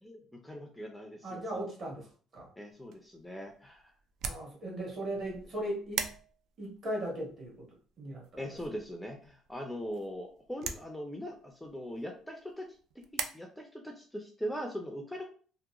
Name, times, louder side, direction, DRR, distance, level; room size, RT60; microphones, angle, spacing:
voice 1, 0.0-1.6 2.6-3.9 8.4-12.7 13.0-15.3, equal, 5° left, 2 dB, 0.4 m, -41 dB
voice 2, 1.2-2.5 4.2-6.1 6.6-8.8, right 1 dB, 45° right, -2 dB, 1.4 m, -38 dB
sound 1, 2.7-13.3, right 7 dB, 70° right, 0.3 m, -44 dB
2.8 x 2.1 x 2.3 m, 0.41 s
cardioid pair, 115°, 0 cm